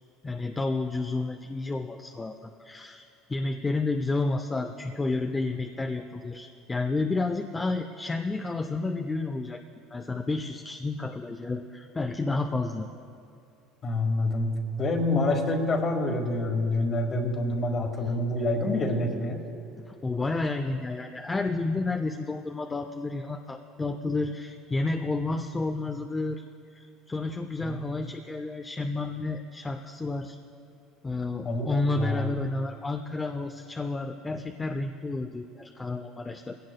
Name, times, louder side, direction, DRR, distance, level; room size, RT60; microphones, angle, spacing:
voice 1, 0.2-3.0 3.3-9.6 9.9-12.9 18.0-18.1 19.9-26.4 26.7-30.4 31.0-36.5, left 3 dB, 15° left, 5 dB, 0.5 m, -31 dB
voice 2, 13.8-14.5 14.8-19.4 27.7-27.8 31.4-32.3, left 2 dB, 35° left, 3 dB, 1.8 m, -27 dB
19.5 x 17.0 x 2.2 m, 2.6 s
supercardioid pair, 105°, 0 cm